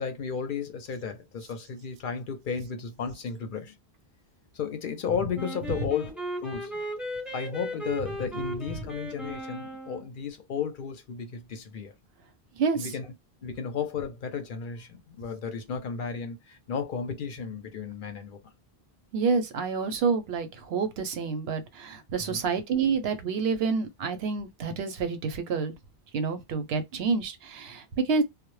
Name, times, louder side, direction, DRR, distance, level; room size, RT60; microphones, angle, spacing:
voice 1, 0.0-3.8 4.5-6.7 7.3-11.9 12.7-13.1 13.4-18.4 22.2-22.4, left 6 dB, 60° left, 0.6 m, -34 dB
Wind instrument woodwind instrument, 5.3-10.1, equal, ahead, 0.6 m, -36 dB
voice 2, 12.6-12.9 19.1-25.7 26.1-28.2, right 5 dB, 80° right, 0.8 m, -28 dB
2.1 x 2.0 x 3.0 m
omnidirectional pair, 1.0 m